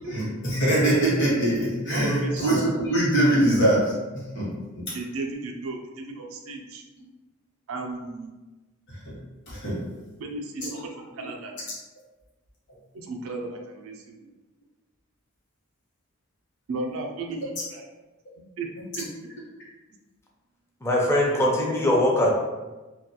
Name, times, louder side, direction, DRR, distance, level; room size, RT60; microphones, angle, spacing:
voice 1, 0.1-4.8 9.1-9.2 9.5-9.8 10.6-10.7, right 1 dB, 60° left, -6 dB, 0.9 m, -23 dB
voice 2, 1.9-3.0 4.9-6.8 7.7-8.3 10.2-11.6 12.9-14.3 16.7-17.9 18.6-18.7 18.9-19.0 21.3-21.4, right 3 dB, 70° right, 2 dB, 0.4 m, -34 dB
voice 3, 20.8-22.3, left 1 dB, 10° left, -2 dB, 0.3 m, -21 dB
2.3 x 2.2 x 2.7 m, 1.2 s
head